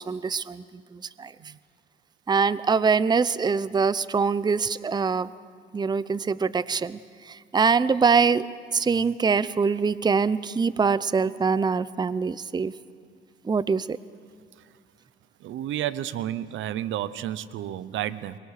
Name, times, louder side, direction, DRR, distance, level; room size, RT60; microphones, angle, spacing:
voice 1, 0.0-1.3 2.3-5.3 5.7-12.7 13.4-14.0, right 5 dB, 20° right, 17 dB, 0.6 m, -24 dB
voice 2, 15.4-18.4, right 12 dB, 80° right, 16 dB, 0.8 m, -31 dB
23.5 x 22.5 x 6.6 m, 2.1 s
cardioid pair, 90°, 20 cm